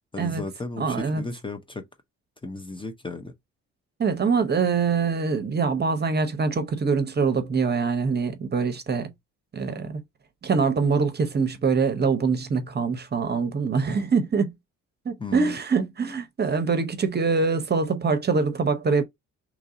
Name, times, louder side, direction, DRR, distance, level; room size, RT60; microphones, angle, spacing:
voice 1, 0.1-1.8 2.4-3.3 15.2-15.6, left 3 dB, 15° left, 0.7 m, -34 dB
voice 2, 0.8-1.2 4.0-9.1 9.5-10.0 10.4-14.5 15.0-19.0, right 5 dB, 35° right, 0.8 m, -24 dB
3.0 x 2.6 x 3.7 m
cardioid pair, 90°, 30 cm